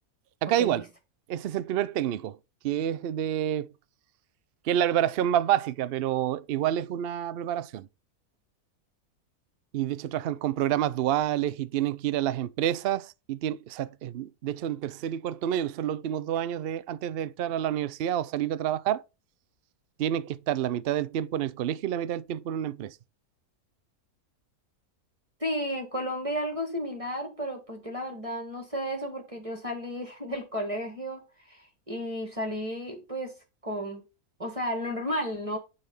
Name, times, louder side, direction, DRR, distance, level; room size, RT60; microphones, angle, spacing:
voice 1, 0.4-0.8 1.3-2.4 2.6-3.7 4.6-7.9 9.7-19.0 20.0-23.0, right 11 dB, 90° right, 0.5 m, -28 dB
voice 2, 25.4-33.3 33.6-34.0 34.4-35.6, equal, 20° right, 1.8 m, -33 dB
9.7 x 4.3 x 5.6 m
omnidirectional pair, 1.6 m